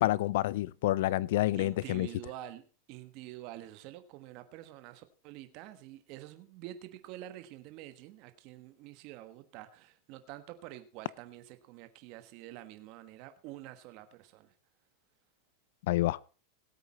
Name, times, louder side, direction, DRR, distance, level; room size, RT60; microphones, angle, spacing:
voice 1, 0.0-2.1 15.9-16.2, left 16 dB, 65° left, 0.5 m, -28 dB
voice 2, 1.5-2.6 2.9-14.5, right 14 dB, 45° right, 1.3 m, -47 dB
17.5 x 8.3 x 4.2 m
supercardioid pair, 150°, 0 cm